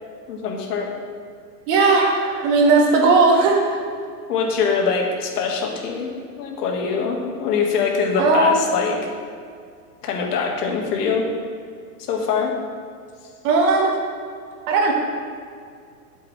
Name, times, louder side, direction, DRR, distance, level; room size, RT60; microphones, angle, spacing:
voice 1, 0.3-0.9 4.3-6.1 6.4-9.0 10.0-11.3 12.1-12.5, left 5 dB, 65° left, 1 dB, 1.8 m, -23 dB
voice 2, 1.7-3.8 8.2-8.5 13.4-14.0 14.7-14.9, right 3 dB, 45° right, 1 dB, 1.7 m, -17 dB
9.3 x 7.7 x 3.2 m, 2.2 s
hypercardioid pair, 120°, 50 cm